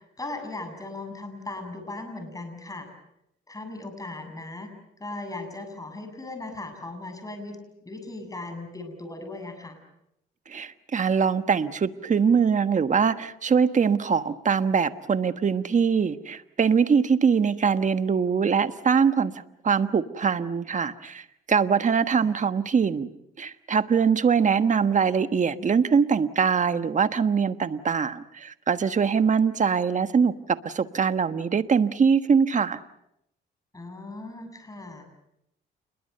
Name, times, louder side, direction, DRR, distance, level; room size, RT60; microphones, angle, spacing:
voice 1, 0.0-2.9 3.5-4.7 5.0-7.6 7.8-9.8 22.2-22.4 33.7-35.2, left 2 dB, 15° left, 6 dB, 7.3 m, -38 dB
voice 2, 10.5-19.3 19.6-23.1 23.4-32.8, right 6 dB, 40° right, 11 dB, 1.4 m, -23 dB
29.5 x 21.5 x 6.8 m, 0.80 s
cardioid pair, 90°, 20 cm